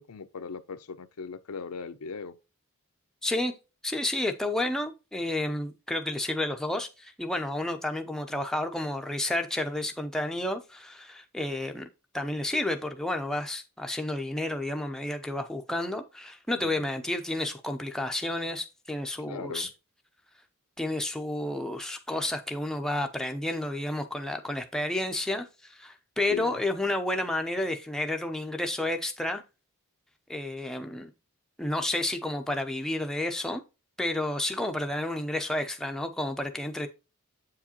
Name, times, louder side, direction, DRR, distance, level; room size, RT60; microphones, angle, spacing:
voice 1, 0.0-2.4 16.6-16.8 19.3-19.7 26.3-26.5, left 5 dB, 85° left, 0.6 m, -39 dB
voice 2, 3.2-3.5 3.8-11.9 12.1-19.7 20.8-29.4 30.3-31.1 31.6-33.6 34.0-36.9, left 1 dB, 5° left, 0.5 m, -31 dB
7.6 x 4.8 x 2.9 m
head